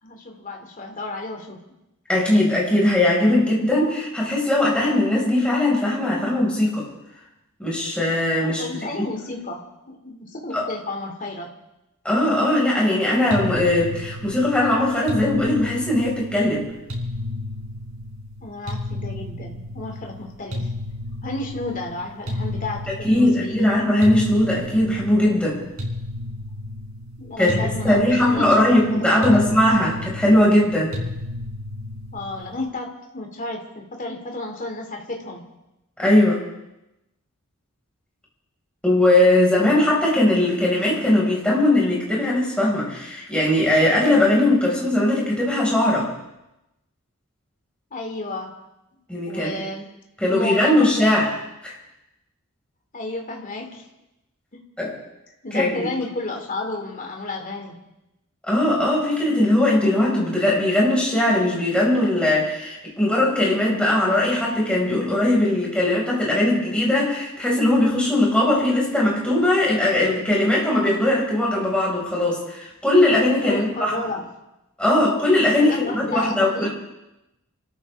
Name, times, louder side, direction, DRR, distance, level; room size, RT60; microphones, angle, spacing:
voice 1, 0.0-1.6 8.4-11.5 18.4-20.7 21.2-23.9 27.2-29.4 32.1-35.4 47.9-48.5 49.3-49.9 50.3-51.1 52.9-53.9 54.5-54.6 55.4-57.8 73.5-74.2 75.6-76.7, left 2 dB, 40° left, 2 dB, 2.6 m, -32 dB
voice 2, 2.1-6.9 7.6-8.7 10.5-10.7 12.0-16.7 23.0-25.6 27.4-27.6 27.8-31.0 36.0-36.4 38.8-46.1 49.1-49.5 50.2-51.3 51.6-51.8 54.8-54.9 55.5-55.9 58.4-73.9 74.8-76.7, left 1 dB, 5° left, -5 dB, 5.5 m, -19 dB
sound 1, 13.3-32.6, left 1 dB, 90° right, 4.3 m, -32 dB
28.5 x 14.0 x 3.6 m, 0.92 s
head